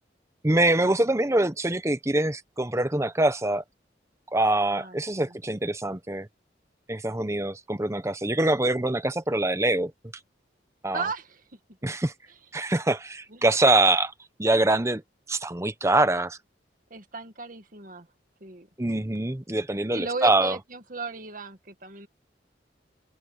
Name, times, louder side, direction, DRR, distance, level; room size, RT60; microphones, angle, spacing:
voice 1, 0.4-3.6 4.3-6.3 6.9-9.9 10.8-11.0 11.8-12.1 12.5-14.1 14.4-15.0 15.3-16.4 18.8-20.6, right 2 dB, 15° right, 0.9 m, -24 dB
voice 2, 4.7-5.4 10.9-11.4 13.3-13.4 16.9-18.1 18.4-18.7 19.9-22.1, right 4 dB, 50° right, 2.0 m, -36 dB
head